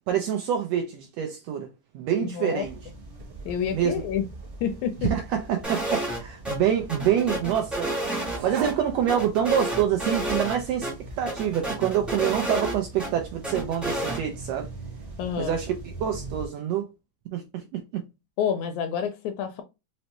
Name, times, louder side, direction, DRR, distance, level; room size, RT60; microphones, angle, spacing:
voice 1, 0.1-1.7 1.9-2.7 3.7-3.9 5.1-8.0 8.4-10.9 11.2-14.7 15.4-16.9 17.3-18.0, right 9 dB, 80° right, 1.5 m, -26 dB
voice 2, 2.2-2.7 3.5-4.3 4.6-5.1 15.2-15.6 18.4-19.6, left 8 dB, 80° left, 1.8 m, -28 dB
sound 1, 2.6-16.5, right 3 dB, 40° right, 0.8 m, -42 dB
sound 2, 3.1-11.8, right 5 dB, 60° right, 1.2 m, -44 dB
sound 3, 5.6-6.2 6.4-6.6 6.9-8.7 9.1-10.6 10.8-10.9 11.2-13.1 13.4-14.2, right 1 dB, ahead, 0.5 m, -30 dB
5.2 x 2.0 x 2.9 m
omnidirectional pair, 3.3 m